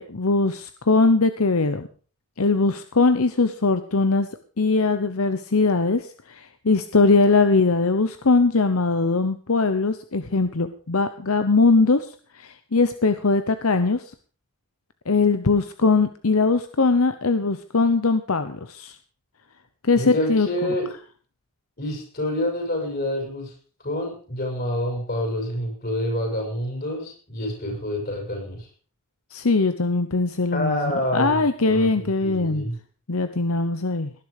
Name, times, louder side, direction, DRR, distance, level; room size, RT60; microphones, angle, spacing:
voice 1, 0.0-1.9 2.4-4.3 4.6-12.1 12.3-14.0 15.1-19.0 19.8-20.7 29.3-32.7 33.1-34.1, left 3 dB, 80° left, 10 dB, 0.9 m, -21 dB
voice 2, 20.0-20.9 21.8-23.5 23.8-28.7 30.5-32.8, left 1 dB, 45° left, 1 dB, 7.1 m, -27 dB
18.5 x 11.0 x 5.0 m, 0.41 s
head